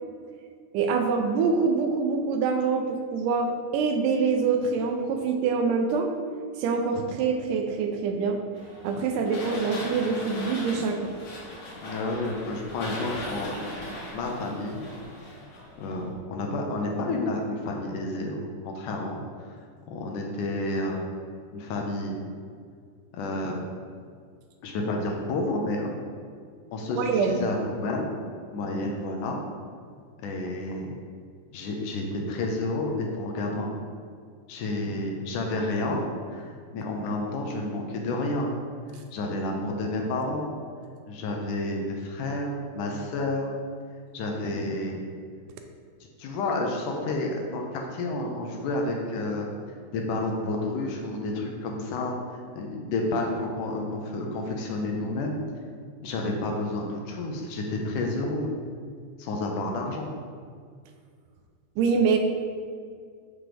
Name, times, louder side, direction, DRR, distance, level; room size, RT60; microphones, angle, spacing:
voice 1, 0.7-6.1 6.6-8.4 8.8-11.1 27.0-27.4 61.8-62.2, right 5 dB, 80° right, 4 dB, 2.1 m, -25 dB
sound 1, 8.5-16.2, left 1 dB, 45° left, 2.5 m, -39 dB
voice 2, 11.8-14.8 15.8-19.5 19.9-21.0 21.5-22.2 23.1-23.6 24.6-25.9 26.7-28.1 28.5-29.4 30.2-30.9 31.5-33.7 34.5-36.0 36.3-38.5 39.1-40.5 41.1-43.6 44.1-45.0 46.2-49.5 49.9-52.2 52.5-55.4 56.0-58.5 59.2-60.1, left 2 dB, 75° left, 1 dB, 2.2 m, -30 dB
7.9 x 6.1 x 3.4 m, 2.1 s
omnidirectional pair, 3.9 m